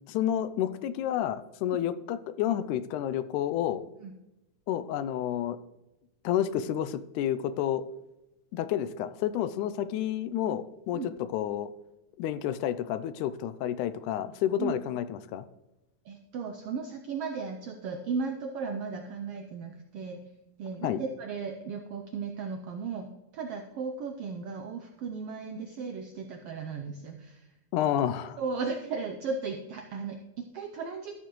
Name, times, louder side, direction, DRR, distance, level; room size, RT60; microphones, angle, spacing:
voice 1, 0.1-3.8 4.7-5.6 6.2-7.8 8.5-11.0 11.3-11.7 12.2-15.5 20.8-21.0 27.7-28.4, left 11 dB, 80° left, 13 dB, 2.0 m, -30 dB
voice 2, 16.0-20.2 20.6-23.1 23.3-27.5 28.4-31.1, right 5 dB, 80° right, 4 dB, 1.3 m, -36 dB
13.5 x 6.8 x 3.1 m, 0.95 s
omnidirectional pair, 3.5 m